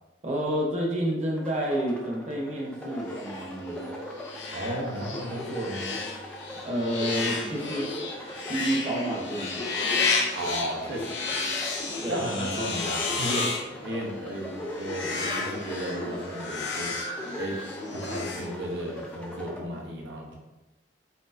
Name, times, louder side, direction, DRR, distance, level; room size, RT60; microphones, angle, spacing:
voice 1, 0.2-3.8 6.6-7.9 8.4-9.7 12.0-12.3, right 1 dB, 40° right, -3 dB, 0.9 m, -29 dB
sound 1, 1.3-19.6, left 1 dB, 5° left, 0.6 m, -39 dB
sound 2, 3.1-19.0, left 4 dB, 80° left, 0.7 m, -33 dB
voice 2, 4.5-6.0 10.3-11.4 12.1-13.5 13.8-17.1 17.4-17.6 17.9-20.4, right 1 dB, 85° right, -1 dB, 0.8 m, -34 dB
4.3 x 3.9 x 2.5 m, 1.1 s
head